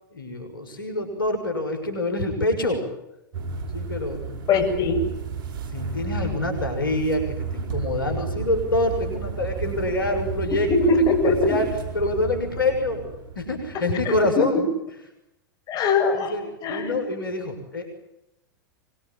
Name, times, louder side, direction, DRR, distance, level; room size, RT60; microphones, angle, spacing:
voice 1, 0.1-2.9 3.7-4.2 5.7-10.7 11.1-11.7 11.9-13.1 13.4-14.7 16.1-16.4 16.7-17.9, left 2 dB, 85° left, 5 dB, 6.3 m, -26 dB
sound 1, 3.3-13.9, right 5 dB, 40° right, 4.6 m, -32 dB
voice 2, 4.5-5.1 10.7-11.6 14.1-14.5 15.7-17.0, left 3 dB, 35° left, 4 dB, 7.3 m, -22 dB
25.0 x 22.5 x 9.0 m, 0.85 s
hypercardioid pair, 100°, 11 cm